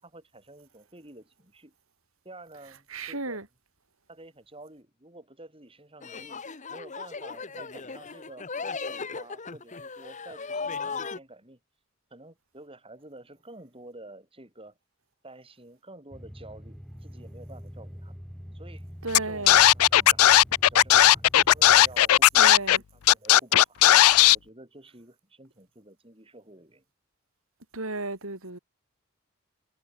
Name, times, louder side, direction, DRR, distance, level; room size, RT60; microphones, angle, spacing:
voice 1, 0.0-1.7 2.2-3.4 4.1-11.6 12.1-14.8 15.2-18.2 18.5-18.8 19.2-19.5 19.9-20.3 20.6-22.4 23.1-24.0 24.3-26.8, right 2 dB, 25° right, 6.0 m, -49 dB
voice 2, 2.9-3.5 19.0-19.6 22.4-22.8 27.7-28.6, right 2 dB, 70° right, 5.5 m, -34 dB
sound 1, 6.0-11.2, left 4 dB, 35° left, 1.2 m, -37 dB
sound 2, 16.1-22.0, equal, ahead, 5.2 m, -45 dB
Scratching (performance technique), 19.1-19.2 19.5-22.8 23.1-24.4, left 13 dB, 85° left, 0.4 m, -16 dB
head